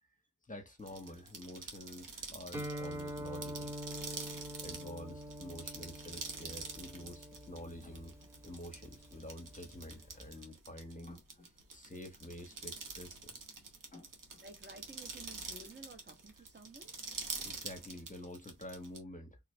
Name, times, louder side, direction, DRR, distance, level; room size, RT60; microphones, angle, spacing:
voice 1, 0.5-3.8 4.6-13.4 13.9-14.4 17.3-19.4, left 1 dB, 25° left, 0.9 m, -49 dB
sound 1, 0.8-19.0, right 4 dB, 80° right, 1.1 m, -46 dB
Guitar, 2.5-10.3, equal, 10° right, 1.3 m, -45 dB
voice 2, 14.4-16.9, right 3 dB, 35° right, 1.1 m, -53 dB
3.7 x 2.4 x 3.1 m
cardioid pair, 60°, 32 cm